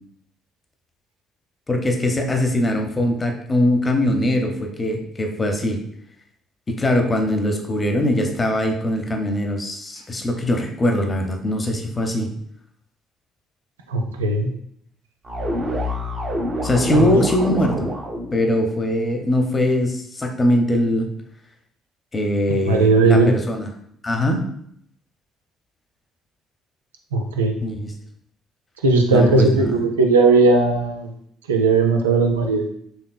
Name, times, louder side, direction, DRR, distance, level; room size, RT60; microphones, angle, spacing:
voice 1, 1.7-5.8 6.7-12.3 16.6-17.9 18.3-21.1 22.1-23.7 24.0-24.4 27.6-27.9 29.1-29.8, left 1 dB, 25° left, 3 dB, 0.7 m, -21 dB
voice 2, 13.9-14.5 16.9-17.0 22.6-23.3 27.1-27.6 28.8-31.1 31.5-32.7, right 3 dB, 80° right, 3 dB, 0.4 m, -17 dB
sound 1, 15.2-18.4, left 1 dB, 40° right, 1.0 m, -26 dB
4.3 x 3.1 x 2.2 m, 0.69 s
figure-of-eight pair, 45°, 0 cm